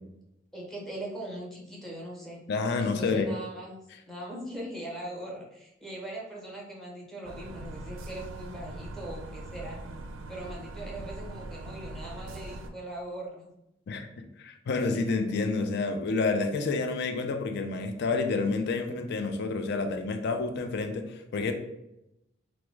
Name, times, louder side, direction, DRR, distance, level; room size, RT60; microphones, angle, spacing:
voice 1, 0.5-2.4 2.8-3.8 4.1-9.8 10.3-13.5, right 1 dB, ahead, -3 dB, 0.8 m, -40 dB
voice 2, 2.5-3.3 13.9-14.1 14.4-21.5, left 3 dB, 60° left, 6 dB, 0.4 m, -29 dB
sound 1, 7.2-12.7, right 2 dB, 70° right, 0.4 m, -41 dB
3.3 x 2.0 x 3.1 m, 0.86 s
head